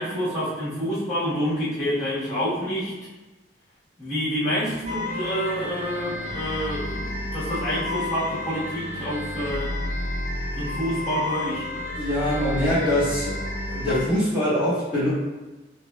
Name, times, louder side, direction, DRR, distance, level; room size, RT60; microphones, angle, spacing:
voice 1, 0.0-2.9 4.0-9.7 10.5-11.7, equal, 40° left, -11 dB, 1.3 m, -28 dB
sound 1, 4.8-14.0, left 1 dB, 70° right, 1.4 m, -31 dB
voice 2, 12.0-13.4 13.7-15.1, left 1 dB, 10° right, -12 dB, 1.4 m, -23 dB
4.4 x 3.1 x 2.3 m, 1.1 s
head